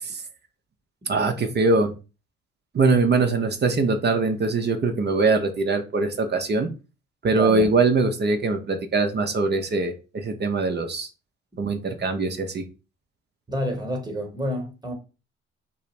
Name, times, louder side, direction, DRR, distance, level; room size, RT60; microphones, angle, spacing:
voice 1, 1.1-1.9 2.7-6.7 7.2-11.1 11.6-12.6, right 3 dB, 30° right, 0.5 m, -22 dB
voice 2, 7.3-7.7 13.5-14.9, equal, 10° right, 1.0 m, -29 dB
2.4 x 2.0 x 3.1 m
hypercardioid pair, 45°, 33 cm